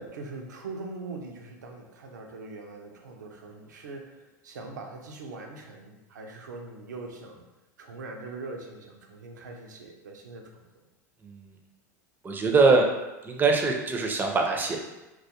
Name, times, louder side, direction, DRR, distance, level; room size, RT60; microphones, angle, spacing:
voice 1, 0.0-7.5 7.8-10.6, right 3 dB, 85° right, 2 dB, 0.4 m, -42 dB
voice 2, 11.2-11.5 12.2-12.9 13.2-14.8, right 4 dB, 20° right, 2 dB, 0.4 m, -23 dB
2.2 x 2.1 x 2.8 m, 1.0 s
hypercardioid pair, 90°, 9 cm